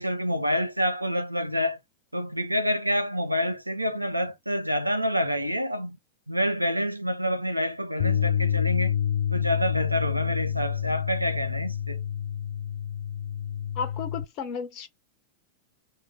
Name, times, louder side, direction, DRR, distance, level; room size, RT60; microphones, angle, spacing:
voice 1, 0.0-1.8 2.1-6.0 6.3-9.0 9.3-12.0, equal, 85° right, 0.6 m, -27 dB
Bass guitar, 8.0-14.2, left 9 dB, 55° left, 0.4 m, -28 dB
voice 2, 13.7-14.9, left 6 dB, 40° left, 1.2 m, -33 dB
5.0 x 2.6 x 3.3 m
figure-of-eight pair, 90°, 0 cm